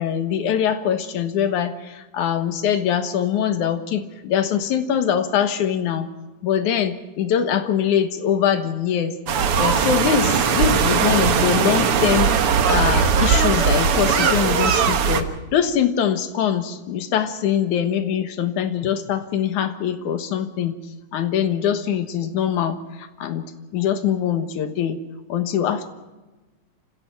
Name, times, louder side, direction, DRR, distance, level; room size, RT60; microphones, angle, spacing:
voice 1, 0.0-6.1 6.4-9.1 9.6-12.3 12.7-15.3 15.5-20.7 21.1-22.8 23.2-23.4 23.7-25.0 25.3-25.9, left 9 dB, 90° left, 9 dB, 2.8 m, -22 dB
sound 1, 9.3-15.2, right 6 dB, 55° right, 1.9 m, -19 dB
28.5 x 16.0 x 5.9 m, 1.2 s
omnidirectional pair, 3.4 m